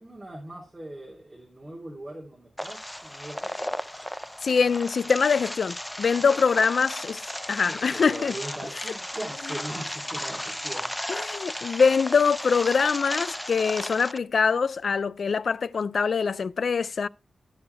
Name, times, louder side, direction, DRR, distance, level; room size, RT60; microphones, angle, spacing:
voice 1, 0.0-3.7 6.3-6.4 7.7-10.9, right 1 dB, 20° right, 3.3 m, -40 dB
sound 1, 2.6-14.2, left 1 dB, 5° left, 0.5 m, -35 dB
voice 2, 4.4-8.3 11.1-17.1, left 5 dB, 65° left, 0.4 m, -24 dB
12.5 x 6.5 x 3.3 m
wide cardioid pair, 95°, 0 cm